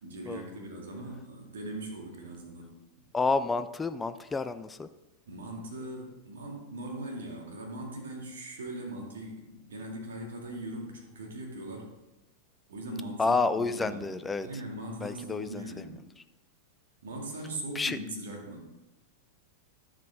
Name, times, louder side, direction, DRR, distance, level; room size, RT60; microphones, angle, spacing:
voice 1, 0.0-2.7 5.3-11.9 12.7-14.1 14.4-16.0 17.0-18.7, right 1 dB, 65° right, 0 dB, 2.4 m, -40 dB
voice 2, 3.1-4.9 13.2-14.5 15.0-15.9 17.7-18.0, left 3 dB, 15° left, 12 dB, 0.4 m, -30 dB
11.5 x 7.4 x 3.7 m, 0.97 s
figure-of-eight pair, 90°, 0 cm